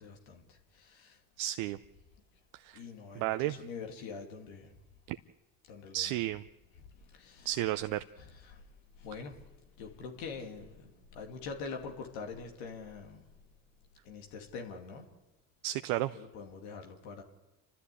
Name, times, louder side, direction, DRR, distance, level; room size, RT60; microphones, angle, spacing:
voice 1, 0.0-1.2 2.7-4.8 5.7-6.2 6.8-7.5 8.2-8.6 9.0-13.3 14.0-15.1 16.1-17.2, left 5 dB, 80° left, 2.6 m, -45 dB
voice 2, 1.4-1.8 2.6-2.8 3.2-3.6 5.1-5.2 5.9-6.4 7.4-8.0 15.6-16.2, right 15 dB, 80° right, 0.7 m, -32 dB
29.0 x 13.5 x 8.5 m
hypercardioid pair, 50°, 46 cm